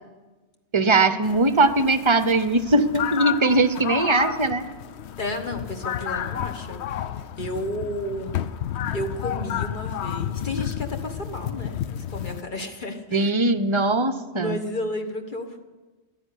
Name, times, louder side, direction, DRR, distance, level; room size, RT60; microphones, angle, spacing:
voice 1, 0.7-4.7 13.1-14.6, right 2 dB, 30° right, 12 dB, 0.7 m, -20 dB
sound 1, 1.2-12.4, left 10 dB, 70° left, 0.9 m, -31 dB
voice 2, 5.2-7.0 7.4-8.4 8.9-13.3 14.3-15.6, left 1 dB, 45° left, 5 dB, 1.5 m, -32 dB
13.0 x 10.0 x 10.0 m, 1.2 s
omnidirectional pair, 1.2 m